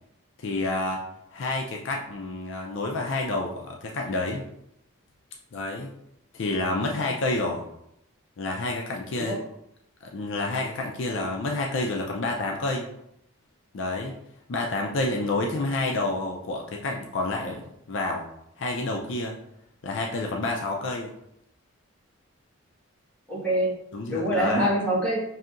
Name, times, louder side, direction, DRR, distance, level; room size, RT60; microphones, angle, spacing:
voice 1, 0.4-1.0 1.3-4.4 5.5-5.9 6.3-7.6 8.4-9.4 10.1-12.9 13.7-14.1 14.5-18.3 18.6-19.4 19.8-21.1 23.9-24.7, left 2 dB, 60° left, 0 dB, 0.4 m, -29 dB
voice 2, 23.3-23.7 24.1-25.2, right 1 dB, 5° left, -8 dB, 1.3 m, -25 dB
5.6 x 2.7 x 2.5 m, 0.78 s
head